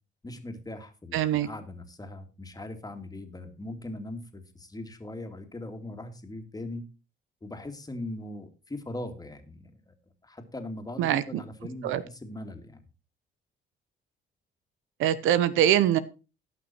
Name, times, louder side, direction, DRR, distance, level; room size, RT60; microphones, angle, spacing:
voice 1, 0.2-6.8 7.4-9.9 10.2-12.8, left 1 dB, 20° left, 6 dB, 2.5 m, -40 dB
voice 2, 1.1-1.5 11.0-11.4 11.8-12.0 15.0-16.0, right 11 dB, 90° right, 15 dB, 1.0 m, -23 dB
17.5 x 6.1 x 4.5 m, 0.32 s
cardioid pair, 90°, 20 cm